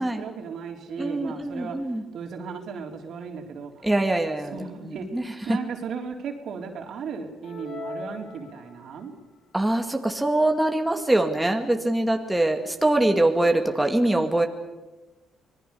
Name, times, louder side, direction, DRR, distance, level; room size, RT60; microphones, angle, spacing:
voice 1, 0.0-1.8 2.1-3.9 4.5-9.2, right 5 dB, 70° right, 3 dB, 3.8 m, -36 dB
voice 2, 1.0-2.0 3.8-5.6 9.5-14.5, right 1 dB, 10° right, 4 dB, 2.2 m, -23 dB
sound 1, 7.4-9.1, left 1 dB, 60° left, 4.5 m, -39 dB
25.5 x 20.0 x 7.0 m, 1.1 s
cardioid pair, 90°, 0 cm